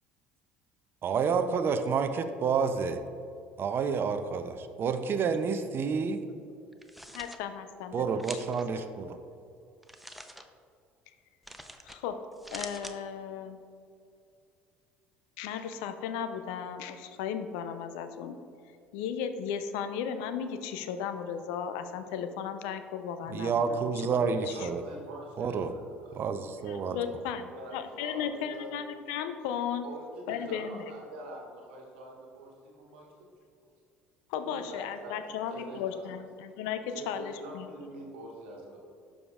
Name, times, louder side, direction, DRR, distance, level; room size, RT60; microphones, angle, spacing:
voice 1, 1.0-3.0 3.6-6.2 7.9-9.2 23.3-24.8 25.4-25.7 26.1-27.0, right 5 dB, 45° right, 9 dB, 0.5 m, -29 dB
sound 1, 6.7-7.4 8.2-8.6 9.8-10.4 11.4-12.0 12.3-13.0, equal, ahead, 0.6 m, -44 dB
voice 2, 7.1-8.6 11.8-12.2 12.5-13.6 15.4-18.4 18.9-23.8 24.1-24.7 26.6-29.8 30.3-30.8 34.3-37.7, left 8 dB, 70° left, 9 dB, 0.5 m, -36 dB
voice 3, 24.3-26.2 26.6-27.2 27.5-28.7 29.8-33.1 34.5-36.1 36.9-38.8, right 1 dB, 80° right, -1 dB, 1.3 m, -45 dB
12.0 x 4.9 x 2.4 m, 2.5 s
hypercardioid pair, 65°, 5 cm